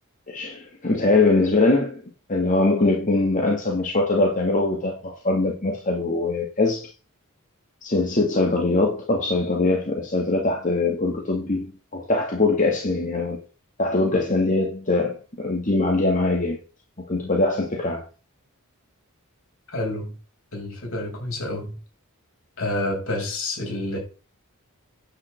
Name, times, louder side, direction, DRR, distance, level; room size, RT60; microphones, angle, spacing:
voice 1, 0.3-2.0 2.3-6.9 7.8-13.4 13.8-16.6 17.1-18.0, left 2 dB, 35° left, 2.0 m, -22 dB
voice 2, 19.7-20.2 20.5-21.8 22.6-24.0, left 1 dB, 65° left, 5.8 m, -28 dB
9.9 x 5.8 x 7.8 m
head